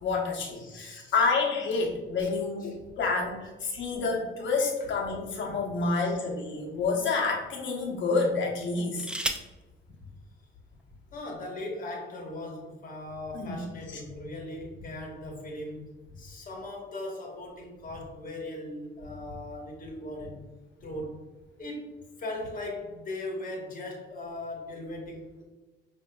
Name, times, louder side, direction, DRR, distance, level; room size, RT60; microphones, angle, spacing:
voice 1, 0.0-9.1 13.3-13.6, left 4 dB, 70° left, 0 dB, 0.9 m, -28 dB
voice 2, 0.6-1.2 2.2-2.3 2.6-2.7 4.8-4.9 5.9-6.0 10.9-20.4 20.8-21.2 21.6-21.9 22.2-25.4, left 1 dB, 45° left, -1 dB, 1.2 m, -39 dB
sound 1, 4.8-6.0 6.8-6.9 8.6-9.6 10.8-10.9 11.2-11.6, right 1 dB, 5° right, 0.3 m, -36 dB
5.1 x 2.7 x 2.3 m, 1.1 s
cardioid pair, 90°, 20 cm